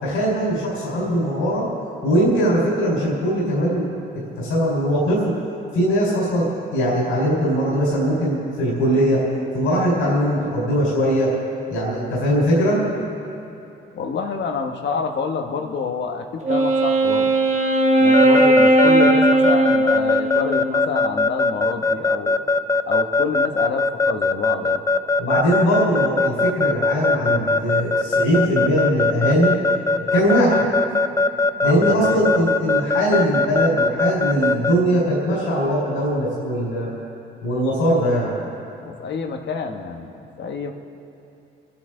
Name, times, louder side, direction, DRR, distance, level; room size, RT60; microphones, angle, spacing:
voice 1, 0.0-1.6 2.0-3.9 4.4-5.3 5.7-9.2 9.5-11.3 11.7-12.8 25.2-29.5 30.1-30.6 31.6-36.9 37.4-38.3, equal, 90° left, -7 dB, 4.5 m, -20 dB
voice 2, 13.9-17.4 18.0-22.4 22.8-24.8 31.6-32.5 38.8-40.7, left 5 dB, 60° left, 4 dB, 1.3 m, -28 dB
Wind instrument woodwind instrument, 16.4-21.0, right 1 dB, 35° right, 1.3 m, -17 dB
Keyboard (musical) / Alarm, 18.1-34.7, left 3 dB, 15° left, 0.5 m, -19 dB
27.5 x 10.0 x 3.9 m, 2.8 s
cardioid pair, 90°, 20 cm